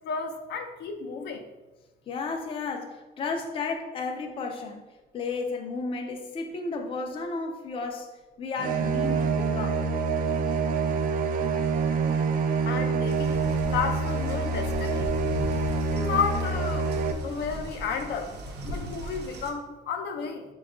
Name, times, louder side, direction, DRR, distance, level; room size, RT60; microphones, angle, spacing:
voice 1, 0.0-1.4 12.6-15.1 15.8-16.9 17.2-18.4 18.6-20.5, left 6 dB, 80° left, 5 dB, 0.6 m, -32 dB
voice 2, 2.1-4.8 5.1-8.1 8.4-9.9, left 4 dB, 30° left, 4 dB, 0.4 m, -33 dB
sound 1, 8.6-17.1, right 4 dB, 55° right, 0.4 m, -26 dB
sound 2, 13.1-19.5, right 1 dB, 80° right, 0.7 m, -39 dB
6.0 x 2.3 x 3.6 m, 1.1 s
cardioid pair, 160°, 17 cm